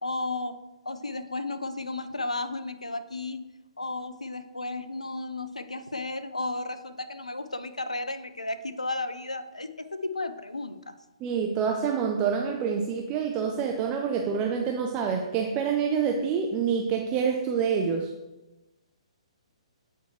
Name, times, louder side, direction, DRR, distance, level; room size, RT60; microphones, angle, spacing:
voice 1, 0.0-0.6 0.9-3.4 3.8-10.9, left 2 dB, 90° left, 10 dB, 0.4 m, -33 dB
voice 2, 11.2-18.1, right 6 dB, 25° right, 3 dB, 0.5 m, -27 dB
8.5 x 4.4 x 3.1 m, 1.0 s
figure-of-eight pair, 130°, 3 cm